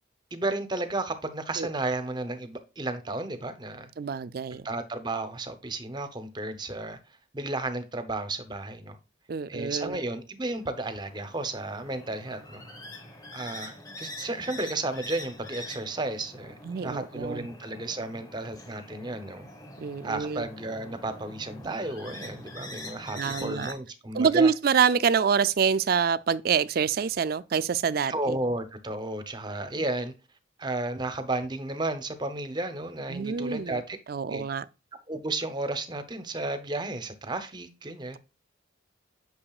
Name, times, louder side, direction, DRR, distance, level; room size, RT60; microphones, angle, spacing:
voice 1, 0.3-3.9 4.6-7.0 7.3-9.0 9.5-12.6 13.3-19.5 20.0-24.5 28.1-30.1 30.6-34.0 34.3-34.4 35.1-38.2, right 2 dB, 20° right, 0.7 m, -33 dB
voice 2, 4.0-4.7 9.3-10.0 16.6-17.5 19.8-20.5 23.1-23.7 24.1-28.4 29.7-29.8 33.1-33.8 34.1-34.6, right 6 dB, 50° right, 0.4 m, -26 dB
sound 1, 10.4-23.7, left 1 dB, 20° left, 1.3 m, -44 dB
8.7 x 6.2 x 2.4 m
head